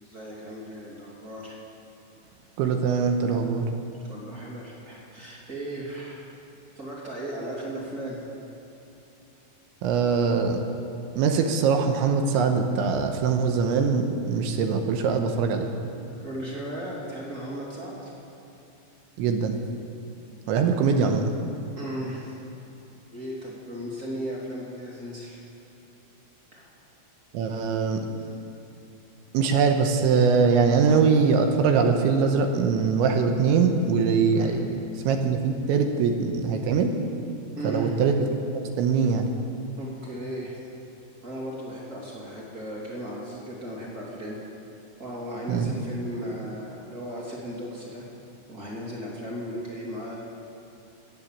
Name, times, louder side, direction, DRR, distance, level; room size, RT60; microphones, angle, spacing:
voice 1, 0.0-1.6 4.0-6.2 6.7-8.2 16.2-18.1 21.8-22.4 23.1-25.4 26.5-26.7 28.2-28.3 34.3-34.5 37.6-38.0 39.8-40.6 41.2-44.4 45.0-48.0 48.5-50.2, right 1 dB, 25° right, -4 dB, 1.8 m, -36 dB
voice 2, 2.6-3.7 9.8-10.6 11.1-15.7 19.2-19.6 20.5-21.3 27.3-28.1 29.3-37.0 37.6-38.2 38.5-39.3 45.5-45.7, right 5 dB, 80° right, 5 dB, 3.2 m, -22 dB
19.0 x 8.9 x 7.3 m, 2.9 s
omnidirectional pair, 5.5 m